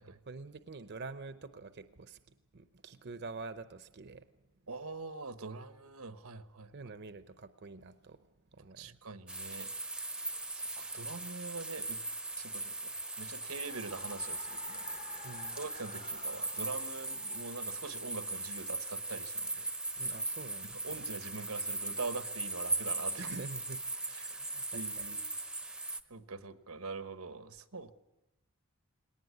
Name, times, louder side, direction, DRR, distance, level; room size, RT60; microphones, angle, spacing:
voice 1, 0.1-2.2 2.5-4.3 6.7-9.0 15.2-15.6 20.0-21.1 23.2-23.8 24.4-25.0, right 3 dB, 50° right, 11 dB, 0.8 m, -47 dB
voice 2, 4.7-6.7 8.8-9.7 10.1-10.2 10.5-12.0 12.4-12.9 13.2-14.8 15.1-15.3 15.6-19.7 20.8-23.3 24.1-25.2 26.1-27.9, right 4 dB, 85° right, 11 dB, 1.3 m, -43 dB
sound 1, 9.3-26.0, right 2 dB, 5° right, 0.7 m, -39 dB
sound 2, 10.4-19.3, left 5 dB, 35° left, 0.9 m, -55 dB
19.5 x 18.5 x 9.7 m, 0.94 s
head